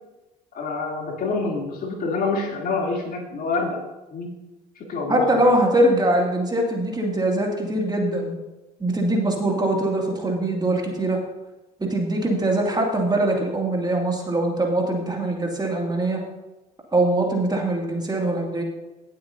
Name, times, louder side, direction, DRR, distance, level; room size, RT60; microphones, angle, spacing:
voice 1, 0.5-3.8 4.1-4.3 4.9-5.5, left 3 dB, 50° left, -1 dB, 3.1 m, -26 dB
voice 2, 5.1-8.4 8.8-11.2 11.8-16.2 16.9-18.6, right 1 dB, 20° right, 0 dB, 2.5 m, -22 dB
18.0 x 7.9 x 2.8 m, 1.1 s
hypercardioid pair, 60°, 20 cm